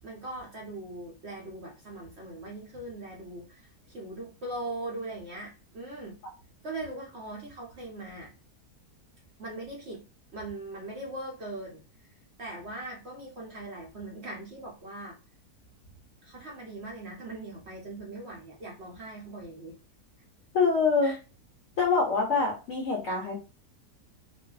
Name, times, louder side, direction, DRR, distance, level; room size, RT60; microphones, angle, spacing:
voice 1, 0.0-6.1 6.6-8.3 9.4-10.0 10.3-12.1 12.4-15.2 16.2-19.8 21.0-21.2, right 2 dB, 55° right, -3 dB, 0.8 m, -40 dB
voice 2, 20.5-21.1 21.8-23.4, left 4 dB, 70° left, -1 dB, 0.7 m, -25 dB
2.5 x 2.4 x 2.3 m, 0.32 s
omnidirectional pair, 1.7 m